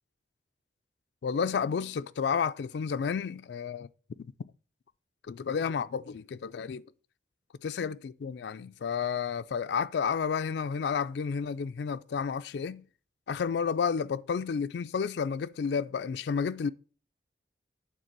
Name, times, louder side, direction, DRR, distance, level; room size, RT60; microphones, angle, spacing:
voice 1, 1.2-3.9 4.2-4.3 5.3-6.8 7.6-12.8 13.3-16.7, left 6 dB, 70° left, 0.3 m, -31 dB
9.0 x 3.7 x 6.6 m
head